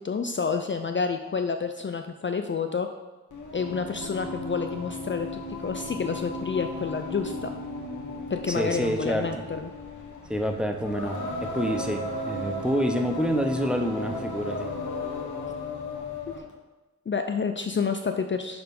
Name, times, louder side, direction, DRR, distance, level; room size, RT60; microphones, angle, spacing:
voice 1, 0.0-2.9 3.5-7.5 8.3-9.7 16.3-16.4 17.1-18.6, left 5 dB, 40° left, 6 dB, 0.4 m, -29 dB
Singing, 3.3-16.5, left 1 dB, 85° left, 1.3 m, -35 dB
voice 2, 8.5-9.4 10.3-14.7, equal, 5° right, 4 dB, 0.8 m, -28 dB
6.7 x 4.3 x 5.3 m, 1.1 s
wide cardioid pair, 70°, 30 cm